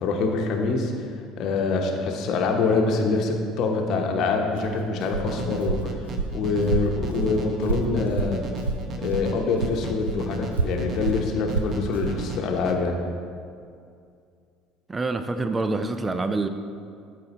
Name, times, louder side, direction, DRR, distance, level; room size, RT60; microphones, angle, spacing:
voice 1, 0.0-0.9 1.4-5.9 6.3-8.4 9.0-12.9, left 3 dB, 55° left, 2 dB, 0.9 m, -25 dB
Walk footsteps, 4.5-9.3 9.6-12.2, right 3 dB, 85° right, 0.3 m, -29 dB
sound 1, 5.3-12.7, right 2 dB, 45° right, 0.7 m, -35 dB
voice 2, 14.9-16.5, right 3 dB, 20° right, 9 dB, 0.5 m, -26 dB
12.5 x 4.5 x 3.0 m, 2.3 s
figure-of-eight pair, 65°, 0 cm